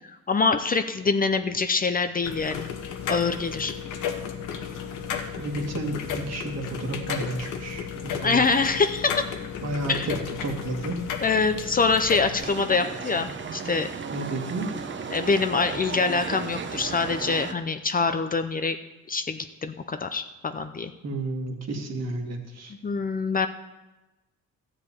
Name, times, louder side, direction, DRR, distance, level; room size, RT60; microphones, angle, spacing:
voice 1, 0.3-2.7 3.1-3.7 8.2-9.2 9.9-10.1 11.2-13.9 15.1-18.8 19.1-20.9 22.8-23.5, left 4 dB, 30° left, 9 dB, 0.6 m, -25 dB
sound 1, 2.2-12.4, left 7 dB, 90° left, 1.1 m, -34 dB
voice 2, 5.4-8.5 9.6-11.0 14.1-14.7 21.0-22.7, right 2 dB, 60° right, 3 dB, 1.9 m, -31 dB
sound 2, 12.4-17.5, right 5 dB, 40° right, 0.9 m, -35 dB
13.0 x 5.0 x 8.5 m, 1.1 s
cardioid pair, 90°, 30 cm